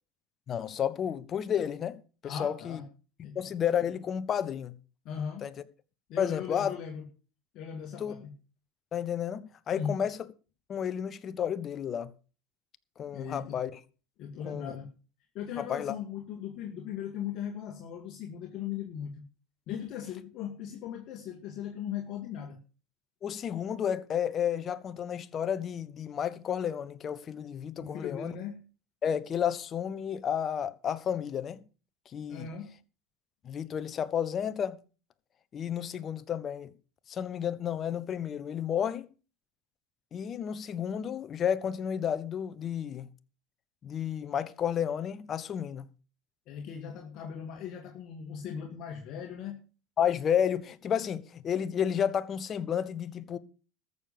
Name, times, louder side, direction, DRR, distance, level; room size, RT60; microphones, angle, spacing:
voice 1, 0.5-2.0 2.2-2.8 3.3-4.7 5.4-5.5 6.2-6.7 8.0-8.1 8.9-10.2 10.7-12.1 13.0-13.8 14.5-14.8 15.6-16.0 23.2-28.3 29.0-31.6 32.1-32.5 33.4-34.8 35.5-36.7 37.1-39.1 40.1-43.1 43.8-45.9 50.0-53.4, left 8 dB, 35° left, 1.2 m, -31 dB
voice 2, 2.2-2.8 3.2-3.4 5.0-5.5 6.1-7.1 7.5-8.3 9.7-10.0 13.1-13.6 14.2-14.9 15.3-19.2 19.7-22.6 27.8-28.6 32.3-32.8 46.5-49.6, left 8 dB, 50° left, 2.2 m, -38 dB
14.0 x 7.0 x 7.0 m
hypercardioid pair, 105°, 0 cm